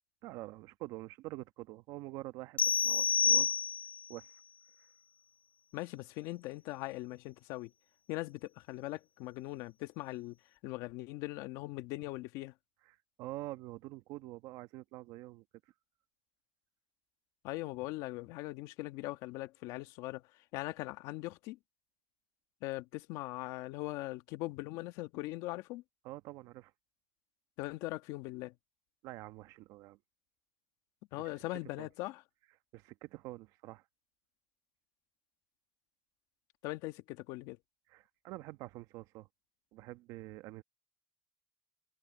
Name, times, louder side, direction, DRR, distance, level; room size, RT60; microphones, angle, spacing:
voice 1, 0.2-3.6 4.1-4.3 13.2-15.4 26.0-26.7 29.0-30.0 31.8-31.9 32.7-33.8 37.9-39.3 39.7-40.6, right 18 dB, 75° right, 1.1 m, -46 dB
sound 1, 2.6-4.1, left 6 dB, 25° left, 0.4 m, -28 dB
voice 2, 5.7-7.7 8.1-10.4 10.6-12.5 17.4-21.6 22.6-25.8 27.6-28.5 31.1-32.2 36.6-37.6, left 19 dB, 80° left, 1.6 m, -40 dB
supercardioid pair, 95°, 6 cm